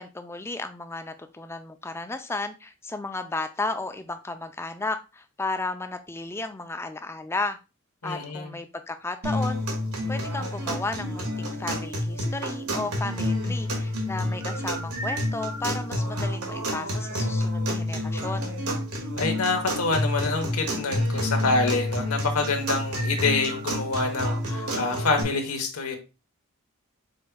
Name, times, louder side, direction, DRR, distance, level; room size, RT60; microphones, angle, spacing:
voice 1, 0.0-7.6 8.0-9.6 10.1-18.5, left 3 dB, 10° left, 8 dB, 0.4 m, -34 dB
voice 2, 8.0-8.5 19.2-26.0, left 3 dB, 90° left, 4 dB, 1.1 m, -26 dB
sound 1, 9.2-25.2, left 1 dB, 85° right, 1.6 m, -29 dB
5.2 x 4.5 x 2.2 m, 0.28 s
head